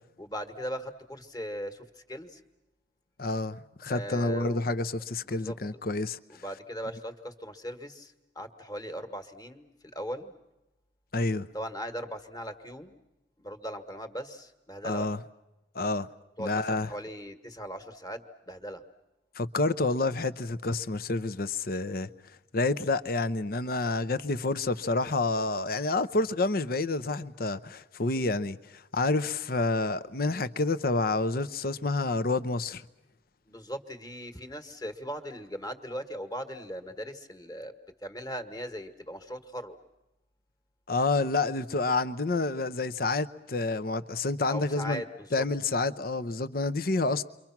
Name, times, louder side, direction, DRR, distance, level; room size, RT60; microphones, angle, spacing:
voice 1, 0.2-2.4 3.9-4.8 5.2-5.5 6.3-10.3 11.5-12.9 13.4-15.1 16.4-18.8 33.5-37.7 38.0-39.8 44.5-45.4, equal, 20° left, 1.6 m, -39 dB
voice 2, 3.2-6.2 11.1-11.5 14.8-15.2 15.7-16.1 16.4-16.9 19.4-22.1 22.5-32.8 40.9-45.0 45.3-47.2, left 3 dB, 55° left, 0.8 m, -28 dB
29.0 x 24.0 x 6.0 m
head